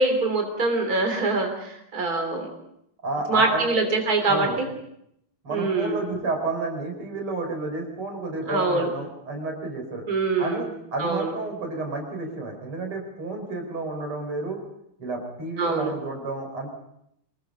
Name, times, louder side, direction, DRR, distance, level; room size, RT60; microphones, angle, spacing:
voice 1, 0.0-2.5 3.3-4.7 5.5-6.0 8.5-8.9 10.1-10.6 11.0-11.3 15.6-15.9, right 3 dB, 40° right, 4 dB, 3.8 m, -24 dB
voice 2, 3.0-3.6 4.3-4.6 5.4-10.0 10.4-14.6 15.0-16.7, right 3 dB, 80° right, 3 dB, 5.4 m, -31 dB
26.0 x 20.0 x 5.6 m, 0.77 s
omnidirectional pair, 2.4 m